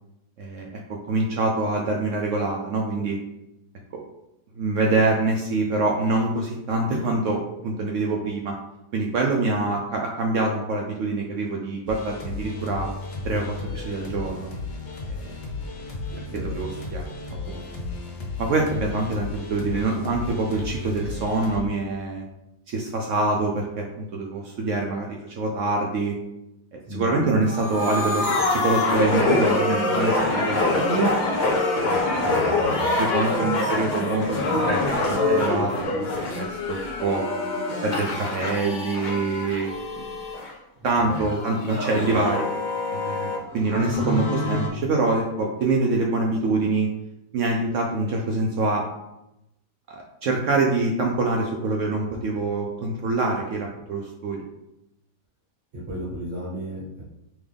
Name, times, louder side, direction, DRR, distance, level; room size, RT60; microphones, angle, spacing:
voice 1, 0.4-3.2 3.9-4.0 4.6-8.5 8.9-12.9 13.2-14.5 15.1-15.3 16.3-17.1 17.5-17.6 18.4-22.2 22.7-26.2 26.7-31.2 31.8-32.5 33.0-36.1 36.3-37.2 37.8-40.1 40.8-42.5 42.9-46.9 47.3-48.8 49.9-54.4, right 3 dB, 75° right, 0 dB, 0.7 m, -25 dB
sound 1, 11.9-21.6, left 3 dB, 60° left, 0.8 m, -34 dB
voice 2, 16.1-16.6 26.9-27.2 32.2-32.9 41.0-41.2 55.7-57.0, equal, 40° right, -8 dB, 1.5 m, -34 dB
sound 2, 27.5-40.5 41.1-44.7, left 2 dB, 80° left, 0.4 m, -25 dB
3.6 x 3.0 x 3.3 m, 0.87 s
omnidirectional pair, 1.8 m